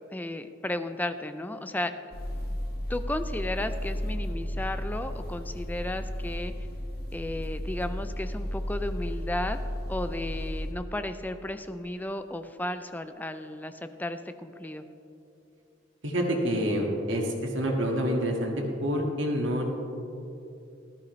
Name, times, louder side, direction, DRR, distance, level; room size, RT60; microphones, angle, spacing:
voice 1, 0.1-1.9 2.9-6.5 7.1-9.6 9.9-14.9, left 1 dB, 10° left, 9 dB, 0.4 m, -34 dB
sound 1, 2.1-10.7, equal, 55° left, 1.4 m, -34 dB
voice 2, 16.0-18.5 18.8-19.8, equal, 75° right, 0 dB, 1.8 m, -27 dB
13.5 x 12.5 x 3.2 m, 2.7 s
head